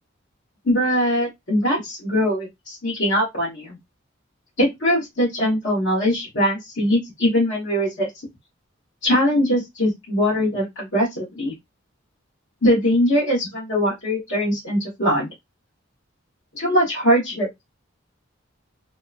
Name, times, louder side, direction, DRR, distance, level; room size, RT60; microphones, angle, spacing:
voice 1, 0.6-3.8 4.6-8.1 9.0-11.5 12.6-15.3 16.5-17.6, equal, 65° left, -8 dB, 1.2 m, -21 dB
2.8 x 2.1 x 2.4 m, 0.18 s
head